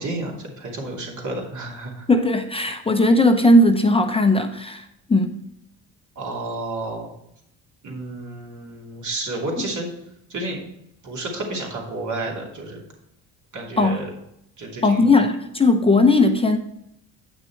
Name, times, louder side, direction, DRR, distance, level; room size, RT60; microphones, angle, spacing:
voice 1, 0.0-2.1 6.2-7.1 7.8-9.9 10.3-10.6 11.0-12.8 13.5-14.1 14.6-15.1, right 2 dB, 45° right, -1 dB, 2.7 m, -31 dB
voice 2, 2.1-5.4 13.8-14.0 14.8-16.6, left 2 dB, 15° left, 5 dB, 0.7 m, -17 dB
9.1 x 6.0 x 4.4 m, 0.80 s
cardioid pair, 100°, 42 cm